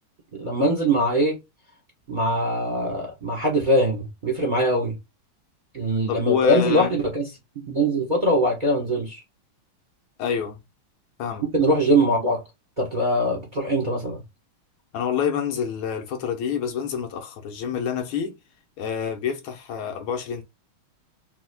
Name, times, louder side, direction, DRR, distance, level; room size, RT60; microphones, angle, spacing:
voice 1, 0.3-1.4 2.1-5.0 5.7-7.2 7.6-9.2 11.5-12.4 12.8-14.2, right 1 dB, 30° right, 1.0 m, -22 dB
voice 2, 6.1-7.0 10.2-10.6 11.2-11.5 14.9-18.4 18.8-20.4, left 7 dB, 80° left, 1.7 m, -27 dB
5.8 x 2.8 x 2.2 m
omnidirectional pair, 2.3 m